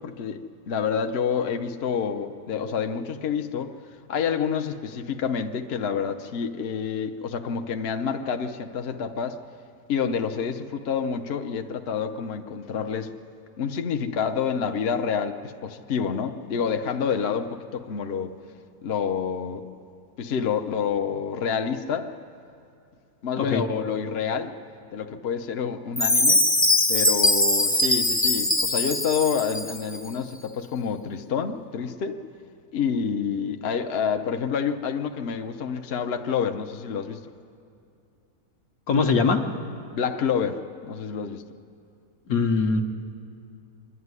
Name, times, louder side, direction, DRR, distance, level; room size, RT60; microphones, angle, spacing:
voice 1, 0.0-3.7 4.1-9.4 9.9-13.1 13.6-18.4 18.8-19.7 20.2-22.1 23.2-24.5 24.9-26.4 26.9-32.2 32.7-37.2 39.9-41.5, left 6 dB, 55° left, 6 dB, 0.8 m, -28 dB
Chime, 26.0-30.0, left 1 dB, 20° left, 0.3 m, -21 dB
voice 2, 38.9-39.4 42.3-42.8, left 4 dB, 70° left, 4 dB, 1.5 m, -21 dB
25.5 x 11.0 x 9.6 m, 2.5 s
omnidirectional pair, 1.6 m